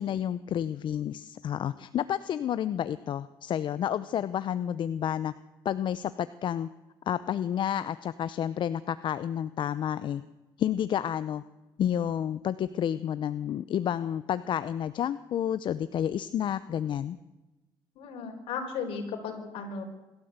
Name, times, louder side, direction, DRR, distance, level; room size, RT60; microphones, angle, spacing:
voice 1, 0.0-5.3 5.6-6.7 7.1-10.2 10.6-11.4 11.8-17.2, left 10 dB, 60° left, 15 dB, 0.7 m, -30 dB
voice 2, 18.0-19.8, left 5 dB, 80° left, 4 dB, 4.8 m, -35 dB
26.5 x 12.5 x 8.1 m, 1.1 s
cardioid pair, 95°, 9 cm